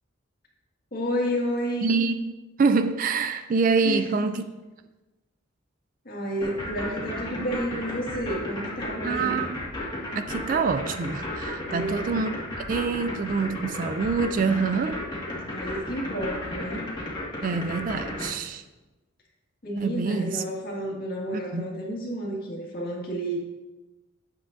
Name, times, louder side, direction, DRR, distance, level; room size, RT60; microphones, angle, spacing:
voice 1, 0.9-2.0 3.8-4.3 6.1-9.4 11.6-12.1 15.4-16.8 19.6-23.4, equal, 45° left, 1.8 m, -31 dB
voice 2, 1.8-2.3 2.6-4.4 9.0-9.6 10.2-12.3 12.7-15.0 17.4-18.6 19.8-20.4 21.3-21.7, right 4 dB, 40° right, 0.3 m, -26 dB
sound 1, 6.4-18.3, left 1 dB, 20° left, 1.7 m, -33 dB
9.4 x 7.4 x 2.6 m
head